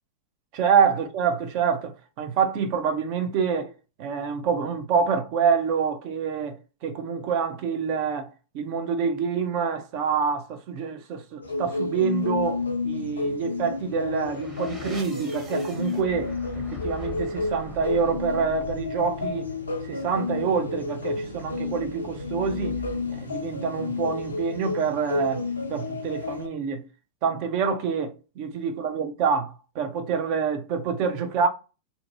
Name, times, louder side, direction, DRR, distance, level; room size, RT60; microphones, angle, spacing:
voice 1, 0.5-3.7 4.0-19.5 19.8-22.8 23.1-26.9 27.2-31.5, right 6 dB, 45° right, 0.6 m, -27 dB
sound 1, 11.4-26.5, left 3 dB, 75° left, 0.5 m, -31 dB
sound 2, 13.8-24.5, left 1 dB, 15° right, 0.9 m, -44 dB
2.6 x 2.2 x 2.7 m
figure-of-eight pair, 90°, 0 cm